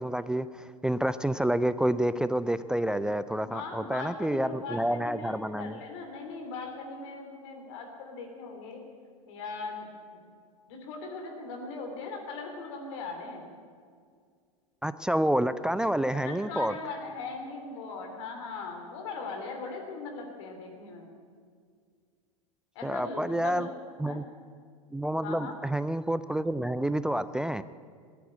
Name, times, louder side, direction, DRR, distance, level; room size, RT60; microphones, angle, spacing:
voice 1, 0.0-5.8 14.8-16.7 22.8-23.7 24.0-24.2 24.9-27.6, right 1 dB, 5° right, 14 dB, 0.3 m, -28 dB
voice 2, 3.3-8.8 9.3-9.9 10.7-13.5 16.1-21.1 22.7-23.7 24.0-24.2 25.2-25.5, left 4 dB, 55° left, 2 dB, 3.0 m, -39 dB
14.0 x 10.0 x 8.5 m, 2.1 s
figure-of-eight pair, 85°, 18 cm